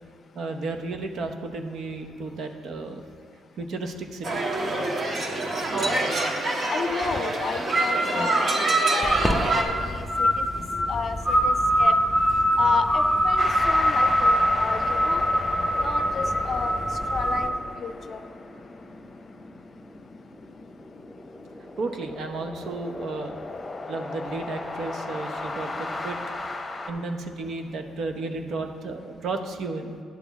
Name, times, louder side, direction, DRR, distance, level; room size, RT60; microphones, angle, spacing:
voice 1, 0.3-3.0 3.6-4.4 6.4-6.5 21.8-23.4 23.9-26.2 26.9-30.0, right 3 dB, 65° right, 5 dB, 0.8 m, -33 dB
sound 1, 4.2-9.6, right 2 dB, 45° right, 1.2 m, -25 dB
voice 2, 6.7-10.5 10.9-11.9 12.6-15.2 15.8-16.8 17.1-18.2, left 6 dB, 50° left, 10 dB, 0.5 m, -31 dB
sound 2, 9.0-17.5, equal, ahead, 0.8 m, -23 dB
sound 3, 13.4-26.9, left 2 dB, 25° left, 1.0 m, -36 dB
10.5 x 7.0 x 4.1 m, 2.3 s
cardioid pair, 90°, 0 cm